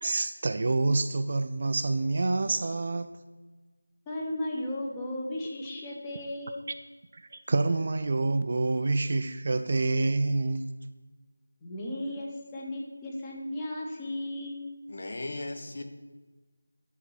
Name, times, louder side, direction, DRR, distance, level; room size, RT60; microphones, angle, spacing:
voice 1, 0.0-3.1 7.1-10.8, right 3 dB, 35° right, 9 dB, 0.3 m, -27 dB
voice 2, 4.1-6.6 11.6-14.7, left 1 dB, 10° left, -2 dB, 0.9 m, -35 dB
voice 3, 14.9-15.8, left 2 dB, 40° left, 6 dB, 0.8 m, -36 dB
9.7 x 4.7 x 5.8 m, 1.3 s
figure-of-eight pair, 165°, 0 cm